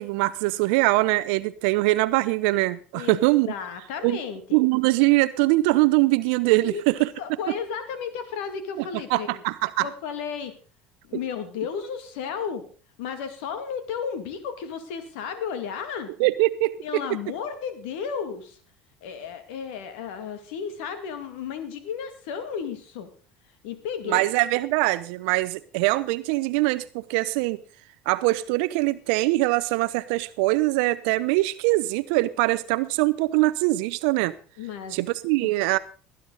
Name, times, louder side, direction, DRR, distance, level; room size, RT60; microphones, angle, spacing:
voice 1, 0.0-3.5 4.0-4.2 4.5-7.1 9.1-9.9 16.2-16.7 24.1-27.6 28.1-34.3 34.9-35.8, right 20 dB, 70° right, 0.6 m, -22 dB
voice 2, 3.5-4.6 6.6-9.4 9.8-10.5 11.0-12.6 13.0-16.1 16.8-18.6 19.0-23.1 23.6-24.2 34.6-35.0 35.4-35.5, left 7 dB, 75° left, 2.2 m, -33 dB
19.0 x 9.9 x 3.9 m
hypercardioid pair, 70°, 6 cm